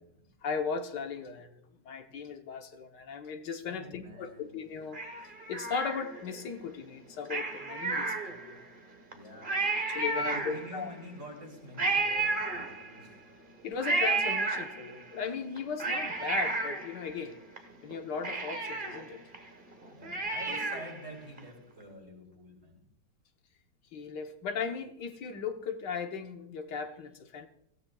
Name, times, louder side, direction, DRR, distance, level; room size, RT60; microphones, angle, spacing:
voice 1, 0.4-5.0 5.5-8.7 9.8-10.9 13.6-17.4 17.8-19.2 20.5-20.7 23.9-27.5, left 6 dB, 80° left, 6 dB, 1.7 m, -37 dB
voice 2, 3.7-4.6 9.1-9.7 10.1-13.3 15.8-16.1 19.4-19.5 19.9-22.8, equal, 60° right, -3 dB, 6.3 m, -48 dB
Cat, 4.9-6.4 7.2-8.7 9.1-9.2 9.4-10.9 11.8-13.1 13.8-15.1 15.6-17.6 17.9-18.0 18.2-21.0 21.4-21.5, right 3 dB, 30° right, 1.3 m, -32 dB
24.5 x 15.5 x 2.3 m, 0.75 s
omnidirectional pair, 1.8 m